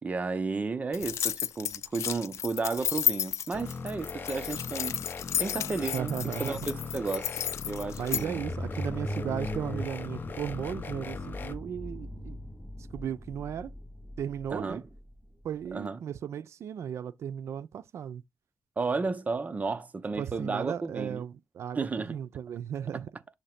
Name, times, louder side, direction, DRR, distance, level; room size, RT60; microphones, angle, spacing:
voice 1, 0.0-5.0 5.4-6.1 6.4-7.3 7.7-8.4 14.5-14.8 15.7-16.0 18.8-21.3 21.7-22.2, right 4 dB, 30° right, 0.6 m, -33 dB
sound 1, 0.9-8.2, left 9 dB, 85° left, 0.4 m, -32 dB
sound 2, 3.5-11.5, left 5 dB, 45° left, 0.7 m, -40 dB
voice 2, 5.9-6.6 8.0-12.4 12.9-13.7 14.2-14.8 15.4-18.2 20.2-23.1, right 9 dB, 75° right, 0.4 m, -35 dB
sound 3, 7.6-15.7, equal, 5° left, 0.8 m, -40 dB
6.6 x 2.8 x 5.8 m
cardioid pair, 110°, 5 cm